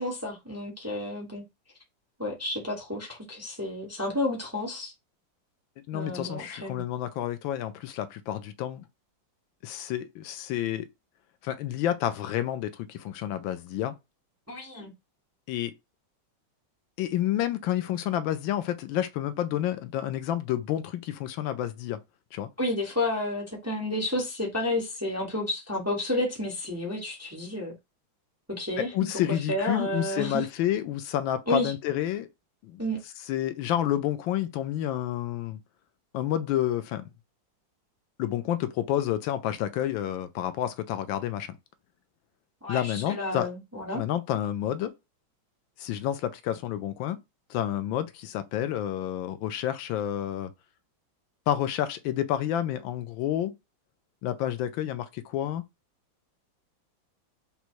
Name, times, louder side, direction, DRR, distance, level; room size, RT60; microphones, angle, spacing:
voice 1, 0.0-1.4 2.2-4.9 5.9-6.8 14.5-14.9 22.6-27.7 28.6-28.9 29.5-30.5 31.5-31.7 32.8-33.0 42.6-44.0, left 1 dB, 10° right, 0.9 m, -31 dB
voice 2, 5.9-8.8 9.6-10.9 11.4-13.9 15.5-15.7 17.0-22.0 22.3-22.5 28.8-32.3 32.6-32.8 33.3-35.6 36.1-37.0 38.2-41.5 42.7-43.5 43.9-44.9 45.8-47.2 47.5-50.5 51.5-53.5 54.2-55.6, left 11 dB, 80° left, 1.3 m, -29 dB
5.3 x 2.2 x 4.5 m
omnidirectional pair, 2.1 m